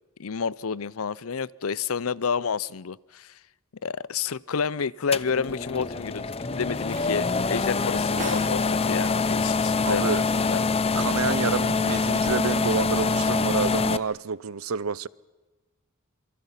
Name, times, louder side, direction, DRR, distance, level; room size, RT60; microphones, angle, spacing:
voice 1, 0.2-3.3 3.8-10.1 10.4-10.8, left 6 dB, 85° left, 0.7 m, -30 dB
sound 1, 5.1-14.0, left 4 dB, 30° left, 0.7 m, -25 dB
sound 2, 5.9-13.7, right 3 dB, 40° right, 5.0 m, -47 dB
voice 2, 9.8-10.2 10.9-15.1, right 5 dB, 85° right, 0.7 m, -28 dB
27.5 x 25.0 x 5.8 m
head